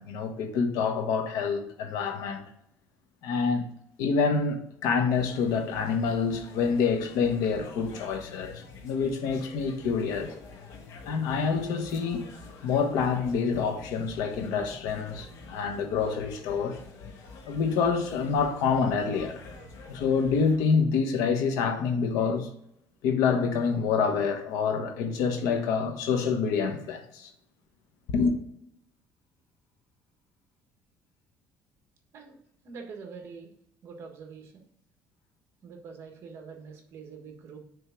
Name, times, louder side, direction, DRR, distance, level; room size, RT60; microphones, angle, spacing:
voice 1, 0.0-2.4 3.2-3.7 4.0-10.3 11.1-12.3 12.6-16.8 17.5-19.4 19.9-22.5 23.0-27.3 28.1-28.3, left 5 dB, 90° left, 1.1 m, -27 dB
sound 1, 5.1-20.6, left 4 dB, 65° left, 1.2 m, -47 dB
voice 2, 32.6-33.5 33.8-34.6 35.6-37.6, right 5 dB, 45° right, 1.4 m, -44 dB
6.5 x 3.6 x 5.8 m
cardioid pair, 155°, 6 cm